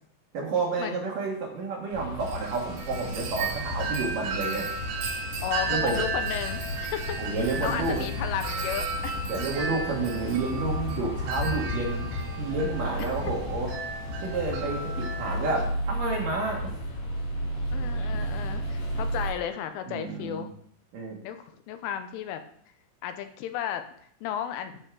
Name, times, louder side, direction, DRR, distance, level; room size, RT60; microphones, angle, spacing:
voice 1, 0.3-4.7 5.7-6.0 7.2-8.1 9.3-12.1 12.4-13.7 14.2-16.7 19.9-20.5 20.9-21.2, right 3 dB, 55° right, -2 dB, 2.7 m, -30 dB
sound 1, 1.9-19.3, left 1 dB, 45° left, 5.4 m, -33 dB
Wind chime, 2.2-15.6, right 4 dB, 80° right, 4.3 m, -35 dB
voice 2, 5.4-7.3 7.6-9.2 17.7-20.5 21.2-22.4 23.0-23.9 24.2-24.8, left 9 dB, 85° left, 9 dB, 3.3 m, -34 dB
12.5 x 6.8 x 4.8 m, 0.63 s
omnidirectional pair, 5.6 m